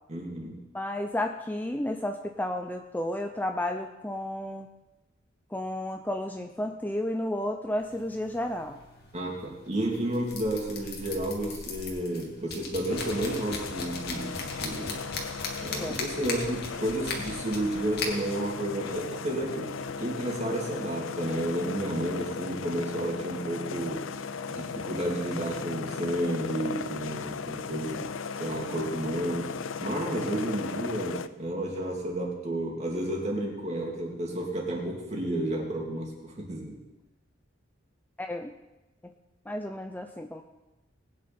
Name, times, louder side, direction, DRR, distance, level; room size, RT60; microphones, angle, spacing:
voice 1, 0.1-0.6 9.1-15.0 15.6-24.1 24.5-36.8, right 1 dB, 35° right, -1 dB, 3.2 m, -31 dB
voice 2, 0.7-4.7 5.5-8.8 15.8-16.0 38.2-38.5 39.0-39.1 39.5-40.4, left 1 dB, 10° left, 5 dB, 0.6 m, -32 dB
sound 1, 7.8-20.4, left 3 dB, 55° left, 2.3 m, -40 dB
sound 2, 12.9-31.3, left 5 dB, 85° left, 0.6 m, -37 dB
20.0 x 9.5 x 4.4 m, 0.99 s
head